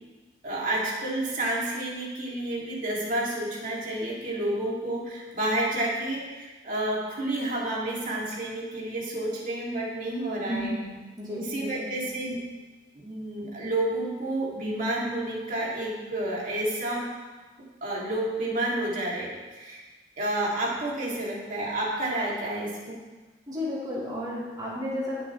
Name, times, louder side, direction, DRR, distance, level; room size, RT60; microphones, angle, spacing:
voice 1, 0.4-10.7 11.3-12.4 12.9-17.0 17.8-19.8 20.2-23.0, right 1 dB, 50° right, -5 dB, 2.9 m, -30 dB
voice 2, 10.5-10.9 11.2-11.9 23.5-25.2, left 1 dB, 20° right, -8 dB, 3.7 m, -32 dB
21.0 x 7.1 x 3.4 m, 1.2 s
head